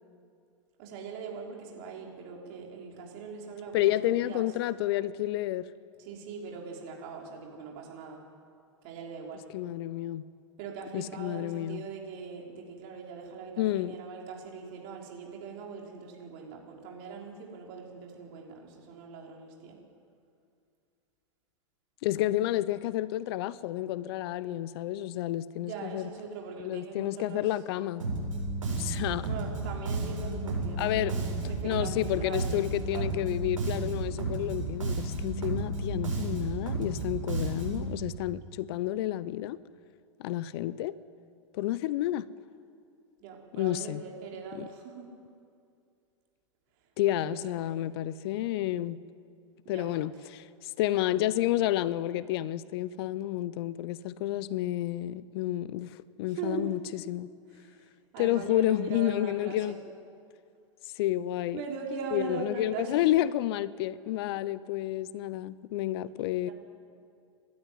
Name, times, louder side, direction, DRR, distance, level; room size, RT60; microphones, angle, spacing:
voice 1, 0.8-4.5 6.0-8.2 8.8-9.5 10.6-19.8 25.6-27.5 29.3-33.2 43.2-45.1 47.1-47.4 49.6-49.9 56.3-56.7 57.5-57.9 58.1-59.8 61.5-63.1 66.5-66.6, right 5 dB, 50° right, 5.4 m, -41 dB
voice 2, 3.7-5.7 9.5-10.2 10.9-11.8 13.6-13.9 22.0-26.1 26.6-28.0 28.8-29.3 30.8-31.1 31.6-39.6 40.2-40.9 41.5-42.3 43.5-44.0 44.5-44.7 47.0-49.0 49.7-57.3 58.2-59.8 60.9-61.6 62.1-66.5, left 14 dB, 50° left, 0.7 m, -30 dB
Bass guitar, 28.0-37.9, right 2 dB, 85° right, 8.0 m, -32 dB
28.5 x 13.0 x 9.7 m
figure-of-eight pair, 100°, 17 cm